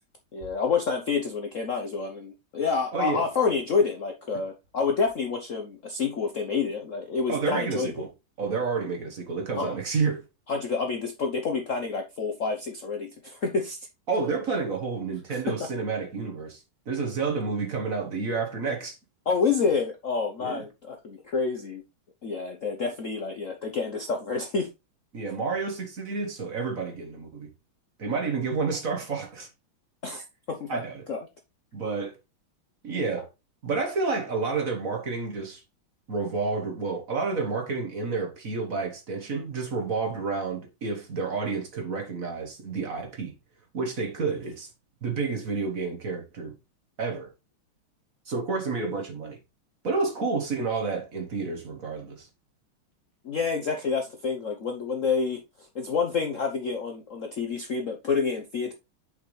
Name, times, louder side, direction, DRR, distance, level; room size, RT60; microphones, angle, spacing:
voice 1, 0.3-8.1 9.5-9.8 10.5-13.9 15.3-15.7 19.3-21.8 22.2-24.7 30.0-30.8 31.1-31.2 53.2-58.7, left 5 dB, 55° left, 0.9 m, -28 dB
voice 2, 2.9-3.3 7.3-8.1 8.4-10.2 14.1-19.0 20.4-20.6 25.1-27.5 28.0-29.5 30.7-31.0 31.7-32.2 32.8-33.3 33.6-35.6 36.1-43.3 43.7-44.7 45.0-46.5 47.0-47.3 48.3-49.4 49.8-52.3, right 4 dB, 45° right, 1.6 m, -30 dB
6.7 x 5.7 x 3.2 m
omnidirectional pair, 2.3 m